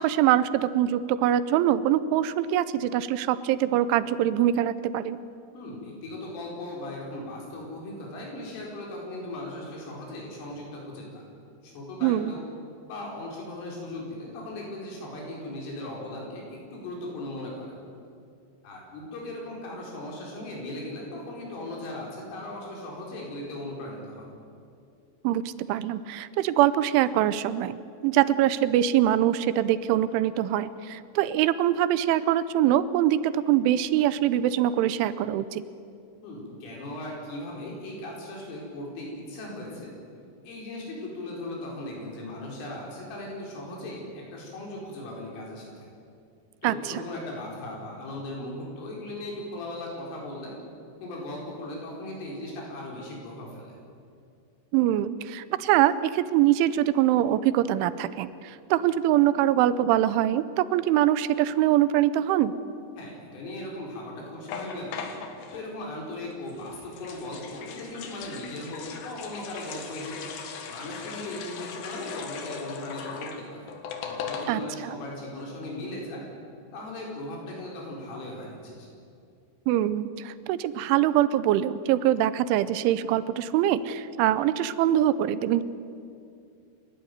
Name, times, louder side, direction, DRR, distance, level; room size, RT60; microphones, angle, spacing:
voice 1, 0.0-5.2 12.0-12.3 25.2-35.6 46.6-47.0 54.7-62.5 74.5-74.9 79.7-85.6, right 12 dB, 85° right, 15 dB, 3.1 m, -23 dB
voice 2, 5.5-11.2 11.6-12.4 12.9-17.8 18.6-24.3 36.2-39.9 40.5-45.9 46.6-50.5 51.0-53.8 63.0-65.1 65.5-70.2 70.7-73.7 74.0-76.2 76.7-78.9, left 1 dB, 90° left, -2 dB, 7.2 m, -38 dB
sound 1, 64.5-65.6 66.5-74.8 75.1-75.2 75.4-75.7, left 6 dB, 70° left, 3.5 m, -39 dB
28.0 x 12.5 x 9.5 m, 2.4 s
omnidirectional pair, 5.5 m